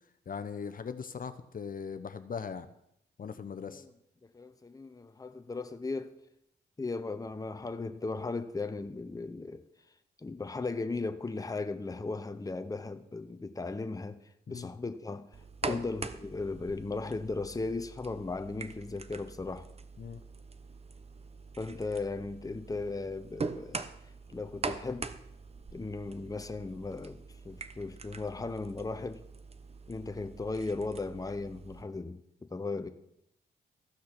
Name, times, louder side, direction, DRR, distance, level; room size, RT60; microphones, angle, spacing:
voice 1, 0.3-2.7 3.2-3.8 14.5-14.7 15.6-15.8 20.0-20.2, left 6 dB, 50° left, 0.8 m, -39 dB
voice 2, 4.3-6.1 6.8-9.6 10.2-14.2 14.5-15.3 15.6-19.7 21.6-23.8 24.3-25.1 25.7-29.2 29.9-32.9, left 3 dB, 20° left, 0.8 m, -37 dB
sound 1, 15.3-31.8, right 4 dB, 35° right, 0.8 m, -43 dB
14.5 x 6.2 x 6.0 m
cardioid pair, 65°, 18 cm